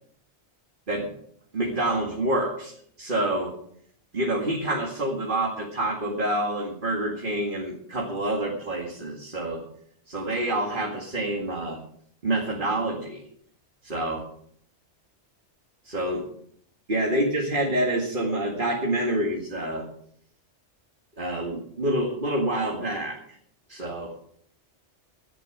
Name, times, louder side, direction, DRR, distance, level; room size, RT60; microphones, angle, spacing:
voice 1, 1.5-2.7 3.0-3.5 4.1-9.6 10.1-11.8 12.2-13.2 13.8-14.2 15.8-16.2 16.9-19.9 21.2-23.2 23.7-24.1, right 1 dB, 45° right, -1 dB, 2.3 m, -27 dB
16.5 x 11.0 x 5.1 m, 0.66 s
omnidirectional pair, 1.2 m